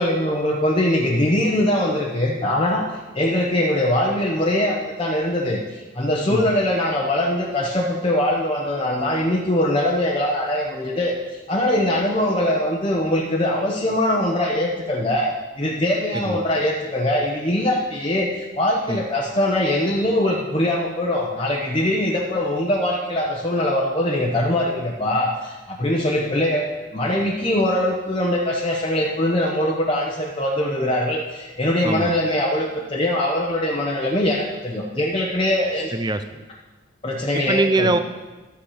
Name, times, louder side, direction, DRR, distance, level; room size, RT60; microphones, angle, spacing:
voice 1, 0.0-2.9 3.1-35.9 37.0-38.0, left 1 dB, 25° left, -3 dB, 1.0 m, -22 dB
voice 2, 31.8-32.2 35.9-36.4 37.3-38.0, right 2 dB, 20° right, 10 dB, 0.5 m, -23 dB
12.5 x 8.9 x 5.0 m, 1.2 s
head